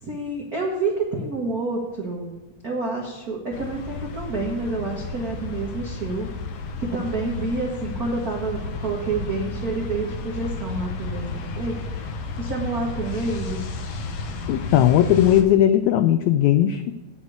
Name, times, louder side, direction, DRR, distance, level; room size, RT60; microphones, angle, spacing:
voice 1, 0.0-2.3 2.6-6.3 6.8-13.6, right 3 dB, 85° right, -1 dB, 0.8 m, -28 dB
sound 1, 3.5-15.4, left 3 dB, 65° left, 1.9 m, -32 dB
voice 2, 14.5-16.9, left 11 dB, 85° left, 10 dB, 1.6 m, -18 dB
8.6 x 6.6 x 8.0 m, 1.0 s
omnidirectional pair, 3.7 m